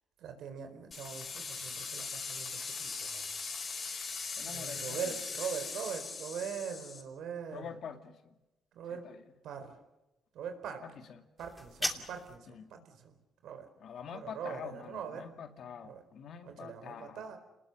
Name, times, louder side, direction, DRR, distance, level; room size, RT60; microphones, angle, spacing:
voice 1, 0.2-3.4 4.4-7.7 8.7-9.0 9.4-9.8 10.3-10.8 11.4-13.1 13.4-13.7 14.1-15.3 15.8-16.0 16.4-17.4, right 7 dB, 80° right, 7 dB, 4.3 m, -42 dB
sound 1, 0.9-7.0, left 5 dB, 45° left, 5.6 m, -40 dB
voice 2, 4.4-5.1 7.5-8.4 8.9-9.2 10.8-10.9 11.8-12.1 12.5-12.8 13.8-17.2, left 7 dB, 65° left, 6 dB, 2.4 m, -46 dB
sound 2, 11.4-12.4, equal, 5° left, 2.8 m, -37 dB
29.5 x 20.0 x 6.6 m, 0.97 s
cardioid pair, 90°, 0 cm